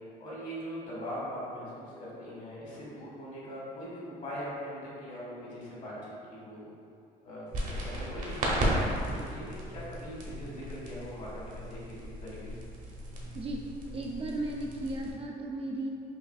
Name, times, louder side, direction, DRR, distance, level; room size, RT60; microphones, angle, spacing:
voice 1, 0.2-6.7 7.2-12.6, equal, 50° left, -6 dB, 1.4 m, -41 dB
sound 1, 7.5-15.1, right 1 dB, 50° right, 0.9 m, -35 dB
voice 2, 13.9-15.9, right 2 dB, 35° right, -1 dB, 0.4 m, -35 dB
5.6 x 2.5 x 2.4 m, 2.5 s
cardioid pair, 110°, 17 cm